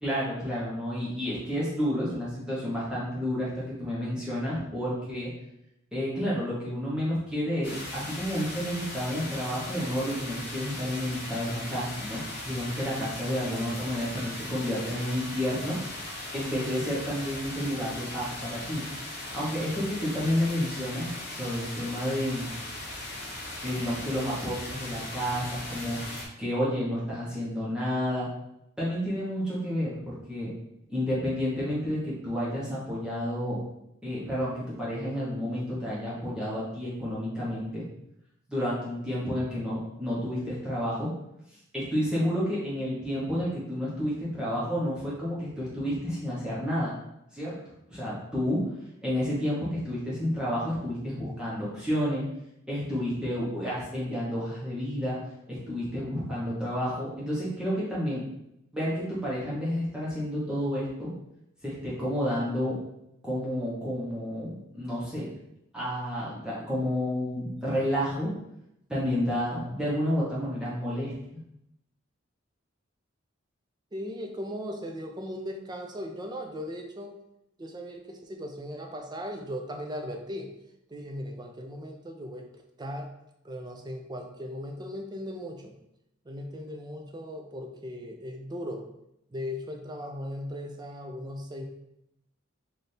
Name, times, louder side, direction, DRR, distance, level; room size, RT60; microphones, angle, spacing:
voice 1, 0.0-5.3 5.9-12.2 12.5-15.8 16.3-18.8 19.3-22.5 23.6-26.0 26.4-28.3 28.8-30.5 30.9-33.6 34.0-37.8 38.5-41.1 41.7-46.9 47.3-47.5 47.9-48.7 49.0-52.2 52.7-55.2 55.5-58.2 58.7-61.1 61.6-62.8 63.2-65.3 65.7-68.3 68.9-71.1, equal, 5° right, -8 dB, 1.0 m, -30 dB
sound 1, 7.6-26.3, left 1 dB, 55° left, 0.9 m, -38 dB
voice 2, 73.9-77.1 77.6-80.5 80.9-83.1 83.4-85.7 86.2-88.8 89.3-91.6, equal, 20° right, 2 dB, 0.4 m, -38 dB
3.3 x 2.6 x 4.3 m, 0.82 s
head